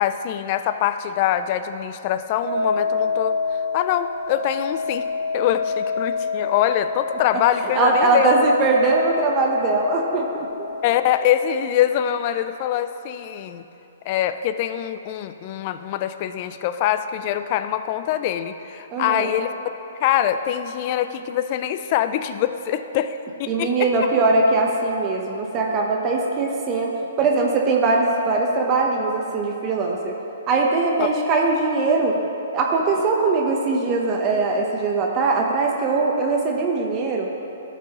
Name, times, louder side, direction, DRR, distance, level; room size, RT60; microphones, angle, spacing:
voice 1, 0.0-3.4 3.7-5.1 5.3-8.3 10.8-13.6 14.1-19.5 20.0-23.9, left 11 dB, 40° left, 10 dB, 0.4 m, -24 dB
sound 1, 2.4-11.1, left 4 dB, 50° right, 1.1 m, -27 dB
voice 2, 7.3-10.7 18.9-19.3 23.5-26.9 27.2-30.1 30.5-32.2 32.5-37.3, right 3 dB, 30° right, 0 dB, 0.9 m, -21 dB
13.5 x 6.1 x 3.0 m, 2.9 s
hypercardioid pair, 135°, 0 cm